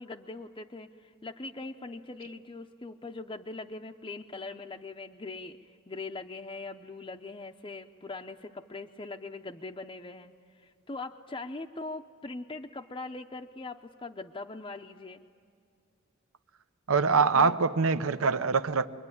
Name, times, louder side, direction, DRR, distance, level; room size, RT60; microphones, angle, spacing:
voice 1, 0.0-10.3 10.6-15.2 17.3-17.6, left 3 dB, 25° left, 2 dB, 0.6 m, -41 dB
voice 2, 16.9-18.9, right 5 dB, 70° right, 12 dB, 0.8 m, -24 dB
26.5 x 23.0 x 9.8 m, 2.3 s
head